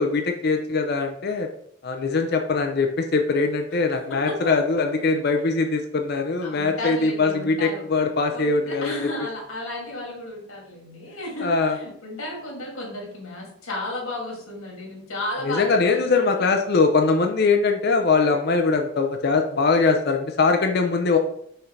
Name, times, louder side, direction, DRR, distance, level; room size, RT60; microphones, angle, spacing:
voice 1, 0.0-1.5 1.8-8.9 11.4-11.8 15.4-21.2, left 4 dB, 50° left, 4 dB, 0.5 m, -22 dB
voice 2, 4.1-4.5 6.4-16.5, left 1 dB, 85° left, -2 dB, 2.4 m, -34 dB
5.7 x 5.5 x 3.2 m, 0.70 s
head